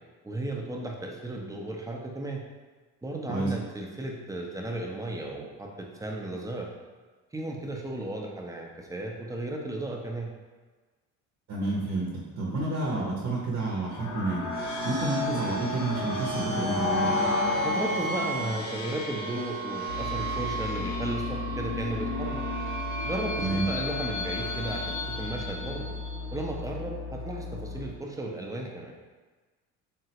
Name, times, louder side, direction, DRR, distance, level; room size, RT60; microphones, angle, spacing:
voice 1, 0.2-2.4 3.0-6.7 7.3-10.3 17.6-22.4 23.0-25.9 26.3-28.9, right 2 dB, 10° right, 0 dB, 0.4 m, -35 dB
voice 2, 11.5-17.2 23.4-23.6, right 2 dB, 45° right, -3 dB, 0.7 m, -30 dB
sound 1, 13.9-26.4, left 1 dB, 50° left, 0.7 m, -32 dB
sound 2, 19.9-27.9, left 4 dB, 90° left, 0.8 m, -37 dB
3.6 x 2.0 x 2.8 m, 1.3 s
supercardioid pair, 75°, 38 cm